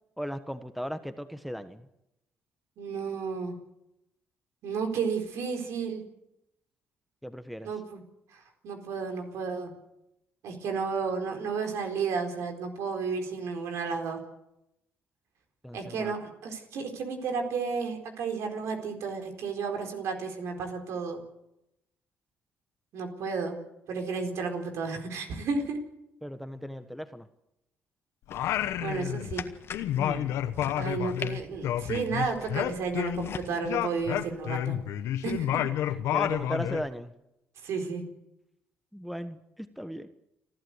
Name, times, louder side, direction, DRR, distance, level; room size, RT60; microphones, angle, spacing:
voice 1, 0.2-1.9 7.2-7.7 15.6-16.1 26.2-27.3 29.9-30.4 36.1-37.1 38.9-40.1, equal, ahead, 10 dB, 1.3 m, -37 dB
voice 2, 2.8-3.6 4.6-6.0 7.6-8.0 8.3-9.7 10.4-14.2 15.7-21.2 22.9-23.6 23.9-25.8 28.8-29.5 30.8-34.8 35.2-35.6 37.6-38.0, right 5 dB, 75° right, 4 dB, 4.3 m, -32 dB
Singing, 28.3-29.5 29.7-33.4 33.7-36.9, left 11 dB, 80° left, 1.0 m, -30 dB
sound 1, 28.3-33.5, left 7 dB, 55° left, 1.7 m, -43 dB
29.5 x 11.5 x 8.1 m, 0.86 s
supercardioid pair, 65°, 5 cm